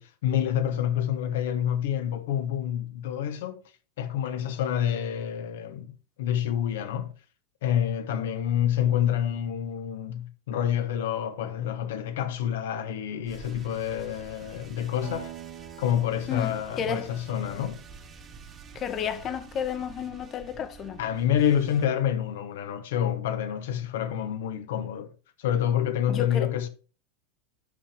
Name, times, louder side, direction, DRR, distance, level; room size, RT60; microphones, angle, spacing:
voice 1, 0.0-3.6 4.0-7.1 7.6-15.3 15.8-17.8 21.0-25.1 25.4-26.7, left 10 dB, 70° left, 1.4 m, -28 dB
sound 1, 13.3-21.9, right 5 dB, 30° right, 2.0 m, -48 dB
Acoustic guitar, 15.0-19.9, right 12 dB, 55° right, 2.1 m, -47 dB
voice 2, 16.3-17.1 18.7-21.0 26.1-26.5, left 8 dB, 35° left, 1.3 m, -32 dB
8.3 x 5.8 x 5.1 m
hypercardioid pair, 90°, 0 cm